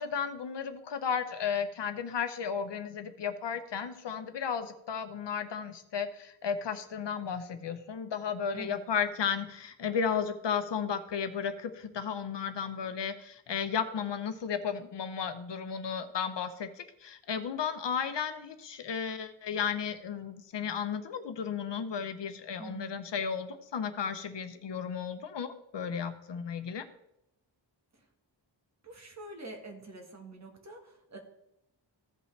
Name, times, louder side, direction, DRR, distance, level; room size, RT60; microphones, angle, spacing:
voice 1, 0.0-26.8, left 7 dB, 65° left, 9 dB, 0.9 m, -34 dB
voice 2, 22.6-23.0 27.9-28.0 28.8-31.2, right 2 dB, 35° right, 3 dB, 1.6 m, -46 dB
15.5 x 5.4 x 3.3 m, 0.80 s
wide cardioid pair, 165°, 45 cm